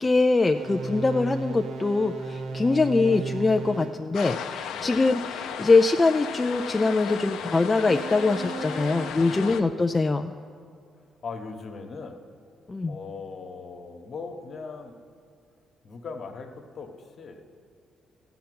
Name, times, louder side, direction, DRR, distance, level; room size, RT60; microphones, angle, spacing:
voice 1, 0.0-10.3 12.7-12.9, left 3 dB, 25° left, 5 dB, 0.4 m, -23 dB
sound 1, 0.5-4.0 7.8-9.1, right 3 dB, 75° right, 0.8 m, -35 dB
sound 2, 4.1-9.6, left 8 dB, 90° left, 0.6 m, -35 dB
voice 2, 4.7-5.1 9.2-10.0 11.2-12.2 12.9-15.0 15.8-17.4, left 4 dB, 50° left, 4 dB, 1.3 m, -40 dB
14.5 x 5.8 x 9.4 m, 2.2 s
cardioid pair, 90°, 0 cm